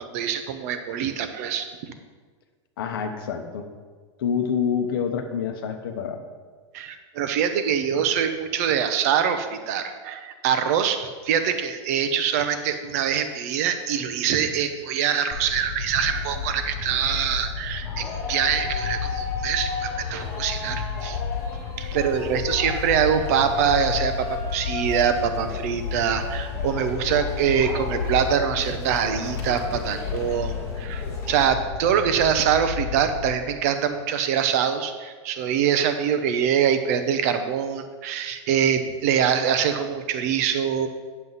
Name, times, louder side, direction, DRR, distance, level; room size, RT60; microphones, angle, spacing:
voice 1, 0.0-1.9 6.7-21.2 21.8-40.9, right 8 dB, 30° right, 9 dB, 0.6 m, -24 dB
voice 2, 2.8-3.7 4.2-6.2, left 7 dB, 45° left, 6 dB, 0.9 m, -27 dB
sound 1, 15.3-33.3, left 6 dB, 30° left, 0.4 m, -32 dB
sound 2, 16.0-31.5, left 4 dB, 15° left, 1.6 m, -36 dB
9.2 x 7.5 x 4.0 m, 1.5 s
supercardioid pair, 175°, 16 cm